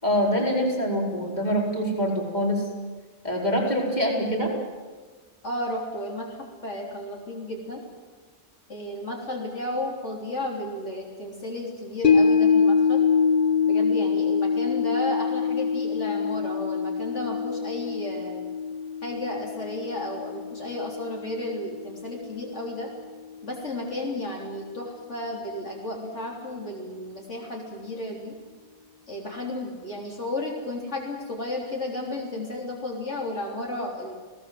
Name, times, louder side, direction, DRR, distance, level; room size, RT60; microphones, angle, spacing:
voice 1, 0.0-2.7 3.2-4.5, equal, 35° left, -1 dB, 4.8 m, -25 dB
voice 2, 5.4-7.8 8.7-13.1 13.6-18.5 19.0-22.9 23.4-28.3 29.1-34.1, left 1 dB, 75° left, -1 dB, 3.9 m, -33 dB
sound 1, 12.0-22.4 22.8-22.9, left 6 dB, 55° left, 1.7 m, -24 dB
29.5 x 18.0 x 7.8 m, 1.4 s
omnidirectional pair, 1.2 m